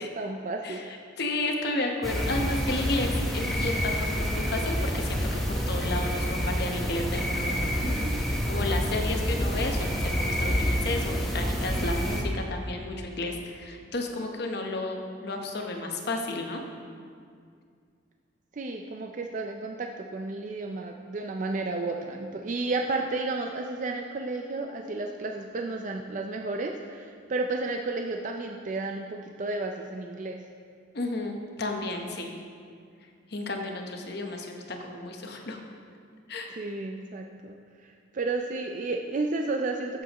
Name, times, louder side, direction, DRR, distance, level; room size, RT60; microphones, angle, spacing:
voice 1, 0.0-0.8 7.8-8.2 18.5-30.4 36.6-37.6 37.8-40.0, right 3 dB, 40° right, 3 dB, 0.4 m, -32 dB
voice 2, 0.6-16.6 30.9-32.3 33.3-35.6 36.3-36.5, left 2 dB, 55° left, 2 dB, 1.0 m, -32 dB
sound 1, 2.0-12.2, equal, ahead, 1.0 m, -28 dB
14.5 x 7.0 x 3.0 m, 2.2 s
head